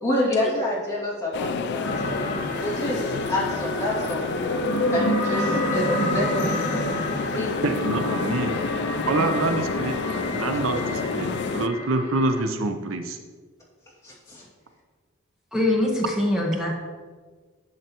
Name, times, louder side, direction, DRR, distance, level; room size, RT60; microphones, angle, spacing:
voice 1, 0.0-2.2 2.6-6.7 7.3-7.6 14.0-14.4, left 1 dB, 15° left, -6 dB, 2.2 m, -28 dB
sound 1, 1.3-11.7, left 5 dB, 55° left, 0.4 m, -29 dB
sound 2, 1.8-12.4, equal, 75° left, 2.5 m, -29 dB
voice 2, 7.6-8.5 9.1-10.0 10.3-13.2, right 2 dB, 70° right, 7 dB, 0.6 m, -26 dB
voice 3, 15.5-16.7, left 1 dB, 5° right, -2 dB, 1.2 m, -23 dB
10.5 x 6.5 x 2.9 m, 1.5 s
head